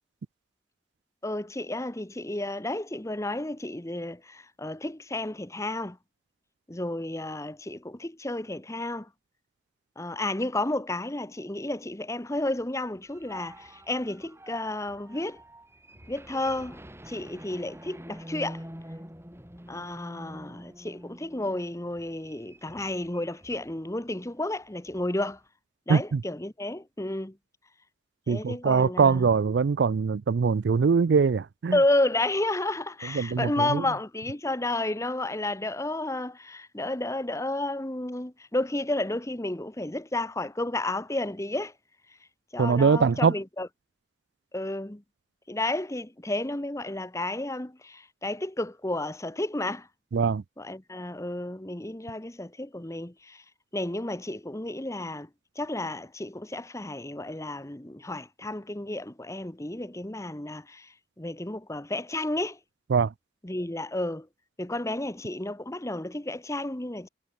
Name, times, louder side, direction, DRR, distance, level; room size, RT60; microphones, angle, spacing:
voice 1, 1.2-6.0 6.7-9.1 10.0-15.4 16.1-16.8 17.1-18.6 19.7-25.4 25.9-27.4 28.3-29.3 31.7-41.7 42.5-43.7 44.5-45.0 45.5-49.9 50.6-53.4 53.7-55.3 55.6-62.6 63.4-64.3 64.6-67.1, left 2 dB, 15° left, 1.1 m, -31 dB
sound 1, 12.8-23.8 24.1-24.3 24.6-25.4, equal, 15° right, 7.4 m, -46 dB
voice 2, 25.9-26.2 28.3-31.8 33.1-33.8 42.6-43.3 50.1-50.4 62.9-63.1, right 5 dB, 60° right, 0.4 m, -22 dB
head